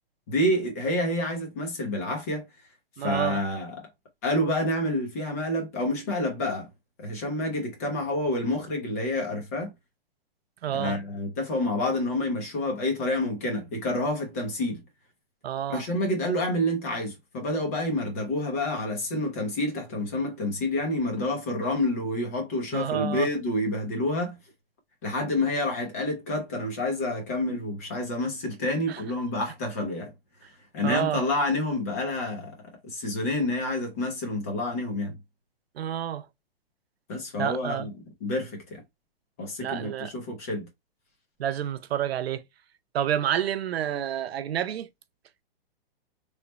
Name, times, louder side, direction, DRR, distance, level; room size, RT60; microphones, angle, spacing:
voice 1, 0.3-2.5 3.0-3.9 4.2-6.7 7.0-9.7 10.7-14.8 15.7-24.4 25.0-30.1 30.7-32.6 32.8-35.2 37.1-37.9 38.2-38.8 39.4-40.7, left 1 dB, 15° left, 0.5 m, -28 dB
voice 2, 3.0-3.4 10.6-11.0 15.4-15.8 22.7-23.3 28.9-29.0 30.8-31.2 35.8-36.3 37.4-37.9 39.6-40.1 41.4-42.4 42.9-44.9, right 10 dB, 90° right, 0.6 m, -29 dB
3.2 x 2.1 x 4.1 m
hypercardioid pair, 170°, 30 cm